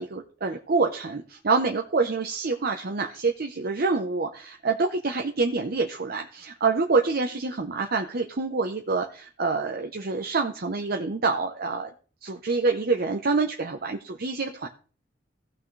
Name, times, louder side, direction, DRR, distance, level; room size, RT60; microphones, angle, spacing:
voice 1, 0.0-11.9 12.2-14.7, right 4 dB, 55° right, 3 dB, 0.8 m, -26 dB
16.0 x 6.0 x 3.3 m, 0.39 s
head